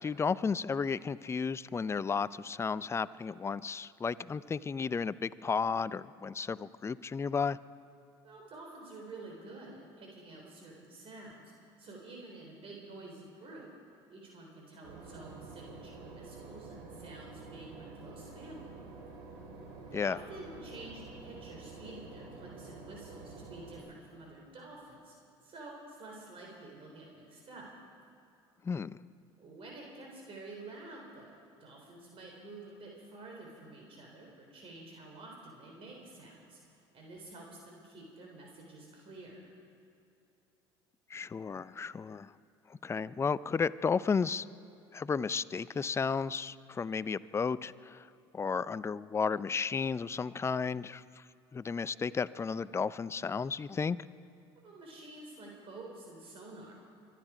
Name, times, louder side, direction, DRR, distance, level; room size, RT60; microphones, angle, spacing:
voice 1, 0.0-7.6 19.9-20.2 28.6-29.0 41.1-42.3 42.8-44.5 44.9-48.0 48.3-51.0 51.5-54.0, left 5 dB, 20° left, 17 dB, 0.4 m, -33 dB
voice 2, 8.2-11.5 11.8-13.7 14.1-18.8 19.9-25.1 25.4-27.7 29.4-36.6 36.9-39.5 54.6-56.7, right 2 dB, 45° right, 0 dB, 3.8 m, -49 dB
Boat Water vehicle / Engine, 14.8-23.8, right 3 dB, 70° right, 3.7 m, -49 dB
24.0 x 11.0 x 5.0 m, 2.7 s
hypercardioid pair, 80°, 13 cm